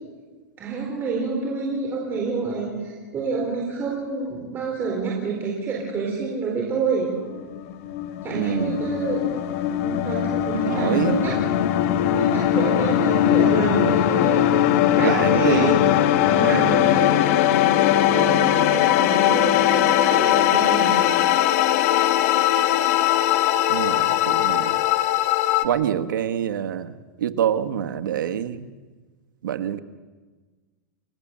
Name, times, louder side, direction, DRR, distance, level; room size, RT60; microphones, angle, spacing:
voice 1, 0.6-7.1 8.2-9.3 9.8-11.3 11.9-15.8 16.2-17.2 18.0-21.1, right 4 dB, 20° right, -2 dB, 4.3 m, -28 dB
sound 1, 7.3-25.7, left 11 dB, 50° left, 1.4 m, -20 dB
voice 2, 8.3-8.8 10.7-11.2 15.0-15.9 16.4-16.8 23.7-24.8 25.6-26.9 27.2-28.7 29.4-29.8, right 10 dB, 90° right, 9 dB, 1.3 m, -25 dB
29.0 x 16.0 x 7.4 m, 1.4 s
supercardioid pair, 155°, 10 cm